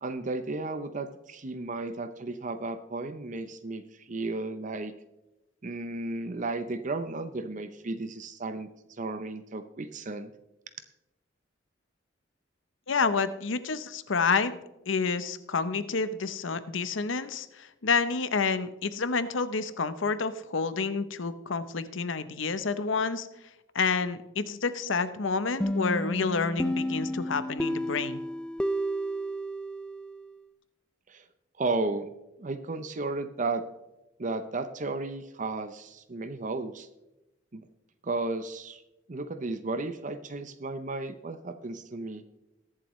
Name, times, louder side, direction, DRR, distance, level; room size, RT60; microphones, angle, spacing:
voice 1, 0.0-4.9 5.6-10.3 31.1-31.3 31.6-32.1 32.4-33.6 34.2-36.9 37.5-37.7 38.0-38.8 39.1-42.2, right 3 dB, 40° right, 10 dB, 0.7 m, -34 dB
voice 2, 12.9-14.5 14.9-23.3 23.7-28.2, left 4 dB, 80° left, 13 dB, 0.8 m, -29 dB
sound 1, 25.6-30.3, equal, 5° left, 0.3 m, -31 dB
22.0 x 7.5 x 3.1 m, 0.97 s
head